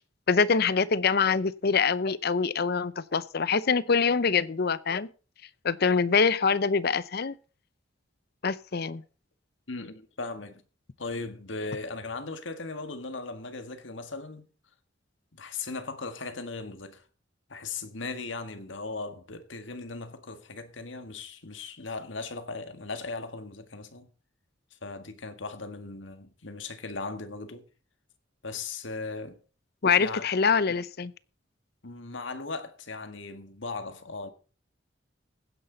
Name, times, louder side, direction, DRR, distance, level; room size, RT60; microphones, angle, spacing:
voice 1, 0.3-5.1 5.6-7.3 8.4-9.0 29.8-31.1, left 5 dB, 55° left, 0.7 m, -24 dB
voice 2, 9.7-10.6 11.0-14.5 15.3-17.0 17.5-24.1 24.8-27.7 28.4-29.4 30.0-30.3 31.8-34.3, left 3 dB, 85° left, 1.8 m, -38 dB
16.0 x 10.0 x 4.0 m
head